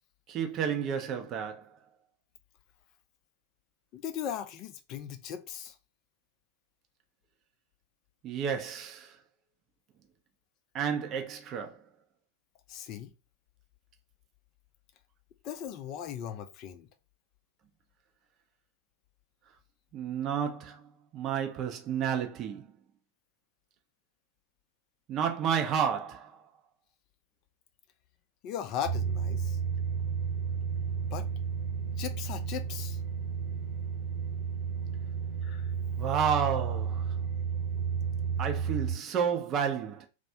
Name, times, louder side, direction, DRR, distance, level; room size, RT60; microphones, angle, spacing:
voice 1, 0.3-1.7 8.2-9.1 10.7-11.8 19.9-20.8 21.1-22.7 25.1-26.4 36.0-37.1 38.4-40.1, right 7 dB, 35° right, 0.4 m, -31 dB
voice 2, 3.9-5.8 12.7-13.1 15.4-16.9 28.4-29.6 31.1-31.3 32.0-33.0 35.4-35.7, left 9 dB, 40° left, 0.4 m, -38 dB
sound 1, 28.8-39.0, right 6 dB, 65° right, 0.8 m, -32 dB
2.3 x 2.0 x 2.7 m
figure-of-eight pair, 90°, 0 cm